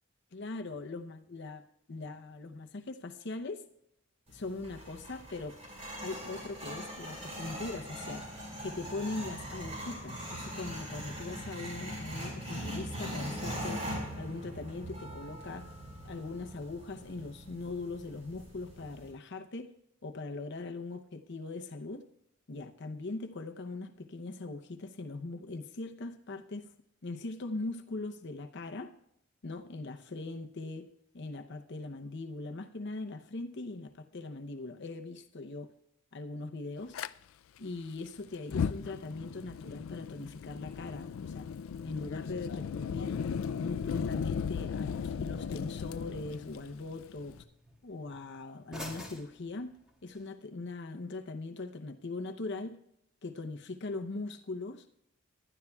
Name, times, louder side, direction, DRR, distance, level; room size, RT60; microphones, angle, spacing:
voice 1, 0.3-1.6 1.9-3.6 4.3-5.6 6.0-8.2 8.6-13.8 14.2-15.7 16.0-19.7 20.0-22.0 22.5-26.7 27.0-28.9 29.4-30.9 31.1-35.7 36.1-37.0 37.6-41.5 41.8-43.2 43.6-47.4 47.8-49.7 50.0-52.8 53.2-54.9, left 3 dB, 60° left, 6 dB, 0.7 m, -40 dB
sound 1, 4.3-19.1, equal, 30° right, 5.0 m, -41 dB
Fire, 36.9-37.1 38.4-47.4, left 6 dB, 80° left, 0.4 m, -36 dB
sound 2, 42.3-50.3, left 1 dB, 5° right, 1.8 m, -53 dB
19.5 x 12.0 x 2.3 m, 0.75 s
head